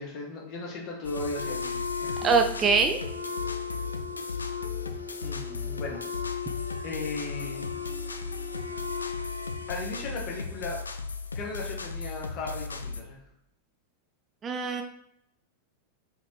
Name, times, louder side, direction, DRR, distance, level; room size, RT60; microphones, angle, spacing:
voice 1, 0.0-2.2 5.2-6.0 6.8-7.7 9.7-10.8 11.3-13.2, left 3 dB, 40° left, -2 dB, 1.3 m, -36 dB
sound 1, 1.0-13.0, left 4 dB, 75° left, 0.4 m, -36 dB
Wind instrument woodwind instrument, 1.3-10.1, left 5 dB, 85° right, 0.7 m, -37 dB
voice 2, 2.2-3.0 14.4-14.8, right 5 dB, 25° right, 6 dB, 0.4 m, -23 dB
4.4 x 3.7 x 3.1 m, 0.77 s
figure-of-eight pair, 90°, 0 cm